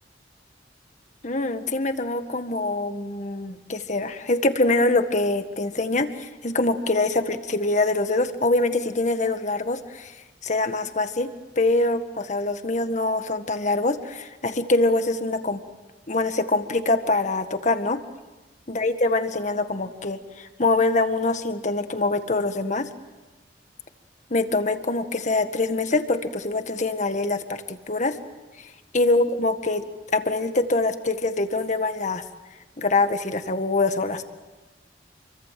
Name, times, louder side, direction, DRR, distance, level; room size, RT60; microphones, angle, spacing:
voice 1, 1.2-10.1 10.4-15.6 16.1-18.0 18.7-22.9 24.3-28.2 28.9-29.8 30.1-32.2 32.8-34.2, left 2 dB, 45° left, 8 dB, 1.8 m, -24 dB
28.5 x 24.0 x 7.7 m, 1.1 s
head